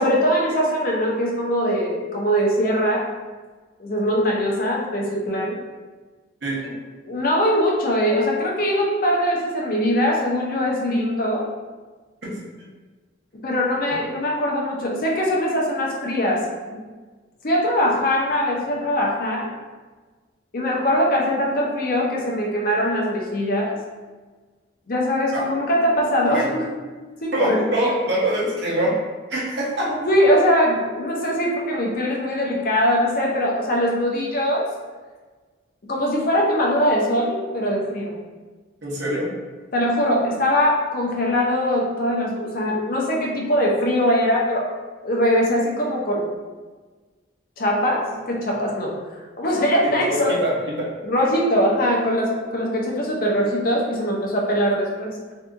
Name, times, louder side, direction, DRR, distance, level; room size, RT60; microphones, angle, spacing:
voice 1, 0.0-3.1 3.8-5.6 6.6-6.8 7.0-11.5 13.4-16.8 17.4-19.5 20.5-23.8 24.9-26.7 27.2-28.0 29.9-34.7 35.9-38.1 39.7-44.7 45.0-46.3 47.6-49.0 49.4-50.3 51.0-55.2, equal, 50° left, -2 dB, 0.6 m, -21 dB
voice 2, 27.3-28.9 29.3-29.9 38.8-39.3 50.1-50.9, right 1 dB, 60° right, -5 dB, 0.8 m, -24 dB
2.7 x 2.4 x 3.5 m, 1.3 s
head